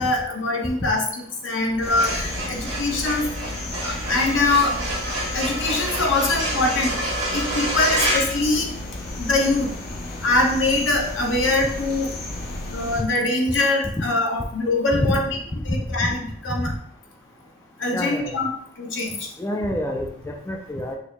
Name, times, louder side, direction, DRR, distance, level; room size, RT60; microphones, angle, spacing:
voice 1, 0.0-3.3 3.8-4.8 5.3-7.0 7.3-8.7 9.2-9.7 10.2-12.1 12.7-15.3 15.6-16.7 17.8-18.5 18.8-19.3, left 2 dB, 80° left, 1 dB, 0.9 m, -23 dB
sound 1, 1.7-9.2, right 1 dB, 65° right, 1.7 m, -28 dB
sound 2, 1.8-13.0, left 2 dB, 50° left, 0.7 m, -33 dB
voice 2, 15.5-16.1 17.9-18.3 19.4-21.0, left 1 dB, 15° left, 2 dB, 0.3 m, -27 dB
6.0 x 2.1 x 3.3 m, 0.64 s
head